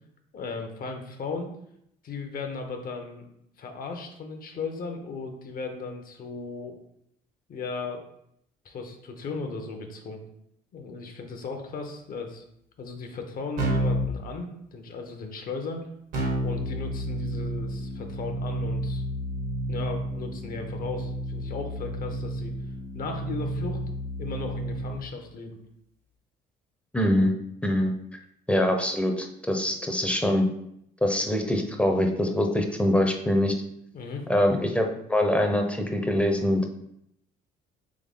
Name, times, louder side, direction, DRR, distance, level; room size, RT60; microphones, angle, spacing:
voice 1, 0.3-1.5 2.0-3.2 3.6-6.8 7.5-8.1 8.6-10.2 10.7-12.4 12.8-15.9 16.4-19.0 19.7-22.6 22.9-23.8 24.2-25.6 33.9-34.3, left 4 dB, 55° left, 5 dB, 0.8 m, -36 dB
Keyboard (musical), 13.6-14.1 16.1-25.0, right 1 dB, 80° right, 1.6 m, -31 dB
voice 2, 26.9-27.3 27.6-27.9 28.5-30.5 31.0-33.5 34.3-36.7, left 1 dB, 5° left, 3 dB, 0.7 m, -24 dB
3.7 x 3.5 x 3.6 m, 0.75 s
supercardioid pair, 80°, 18 cm